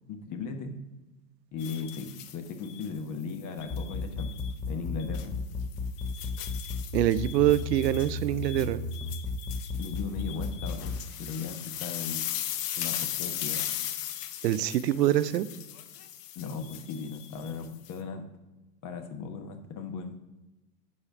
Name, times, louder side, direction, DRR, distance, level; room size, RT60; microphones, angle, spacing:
voice 1, 0.1-0.7 1.5-4.3 4.7-5.3 9.7-12.2 12.8-13.7 16.3-18.2 18.8-20.1, left 5 dB, 40° left, 6 dB, 1.2 m, -37 dB
sound 1, 1.6-2.9 3.6-4.5 5.0-5.3 5.7-17.9, left 11 dB, 70° left, 0.9 m, -38 dB
sound 2, 3.7-11.0, left 4 dB, 5° left, 0.5 m, -33 dB
voice 2, 6.9-8.8 14.4-15.5, right 13 dB, 85° right, 15 dB, 0.6 m, -25 dB
10.0 x 4.4 x 4.9 m, 1.1 s
hypercardioid pair, 110°, 48 cm